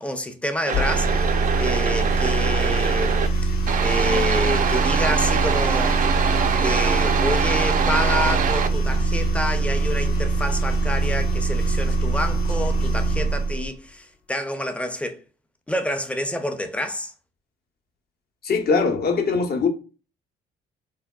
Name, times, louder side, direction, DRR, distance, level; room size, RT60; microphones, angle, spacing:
voice 1, 0.0-3.2 3.4-3.5 3.8-6.0 6.6-15.2 15.7-17.1, left 1 dB, 5° left, 0.5 m, -28 dB
sound 1, 0.7-13.7, right 3 dB, 85° left, 0.7 m, -23 dB
sound 2, 0.7-3.3 3.7-8.7, right 7 dB, 45° right, 0.4 m, -24 dB
voice 2, 18.4-19.7, left 4 dB, 50° left, 0.7 m, -21 dB
3.4 x 2.2 x 2.2 m
hypercardioid pair, 55°, 20 cm